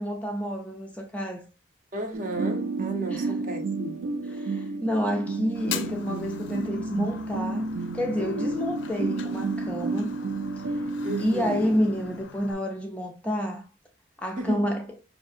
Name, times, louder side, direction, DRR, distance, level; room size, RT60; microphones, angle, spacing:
voice 1, 0.0-1.4 3.1-3.4 4.2-7.7 7.9-10.2 10.6-10.8 11.2-13.6 14.2-14.8, equal, 5° left, 0.4 m, -29 dB
voice 2, 1.9-4.0 11.0-11.7 14.4-14.7, right 1 dB, 40° right, 0.7 m, -34 dB
sound 1, 2.1-12.2, right 3 dB, 85° right, 0.4 m, -31 dB
Fire, 5.5-12.5, left 9 dB, 70° left, 0.4 m, -42 dB
5.4 x 2.6 x 2.4 m
head